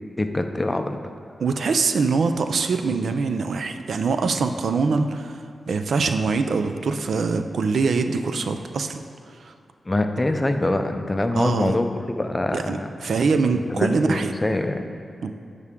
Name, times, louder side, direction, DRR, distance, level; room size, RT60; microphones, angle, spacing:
voice 1, 0.2-1.0 9.9-12.9 13.5-14.9, left 2 dB, 20° left, 6 dB, 0.5 m, -24 dB
voice 2, 1.4-9.0 9.4-9.5 11.4-11.8 12.5-14.3 15.2-15.3, right 4 dB, 75° right, 7 dB, 0.4 m, -23 dB
11.0 x 4.9 x 3.6 m, 2.4 s
wide cardioid pair, 85°, 0 cm